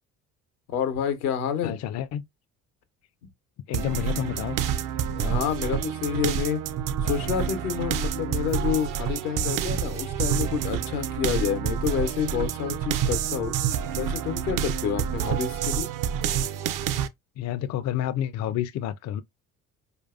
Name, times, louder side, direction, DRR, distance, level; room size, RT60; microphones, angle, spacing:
voice 1, 0.7-1.8 5.1-6.6 7.0-13.5 14.0-15.9, left 7 dB, 80° left, 0.9 m, -28 dB
voice 2, 1.6-2.2 3.7-4.6 17.4-19.2, left 11 dB, 40° left, 0.4 m, -29 dB
sound 1, 3.7-17.1, right 8 dB, 50° right, 0.6 m, -28 dB
4.5 x 2.6 x 2.4 m
hypercardioid pair, 50°, 43 cm